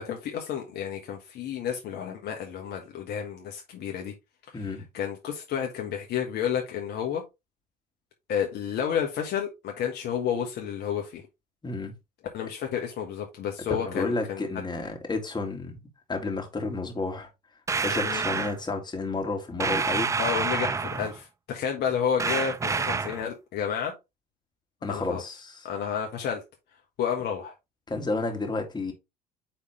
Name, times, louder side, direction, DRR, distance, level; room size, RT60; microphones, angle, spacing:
voice 1, 0.0-4.1 4.5-7.2 8.3-11.2 12.3-14.4 18.0-18.2 20.2-23.9 24.9-25.2 25.6-26.4 27.0-27.5, left 8 dB, 50° left, 1.4 m, -31 dB
voice 2, 4.5-4.8 11.6-11.9 13.7-15.8 16.1-17.3 17.8-20.2 24.8-25.7 27.9-28.9, left 3 dB, 20° left, 2.2 m, -31 dB
sound 1, 17.7-18.6 19.6-21.2 22.2-23.2, right 4 dB, 15° right, 0.4 m, -28 dB
8.9 x 3.6 x 3.1 m
hypercardioid pair, 60°, 21 cm